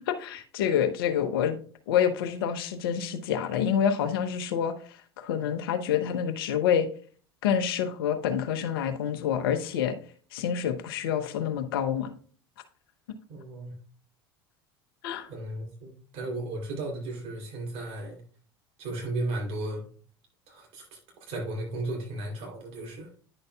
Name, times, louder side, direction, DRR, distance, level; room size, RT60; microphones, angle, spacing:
voice 1, 0.1-1.6 1.9-4.7 5.2-6.9 7.4-10.0 10.3-12.1 15.0-15.3, left 8 dB, 70° left, 9 dB, 0.8 m, -27 dB
voice 2, 13.3-13.7 15.1-18.2 18.8-19.8 20.5-20.9 21.3-23.1, right 2 dB, 50° right, 0 dB, 3.0 m, -35 dB
9.9 x 6.5 x 2.3 m, 0.43 s
figure-of-eight pair, 70°, 13 cm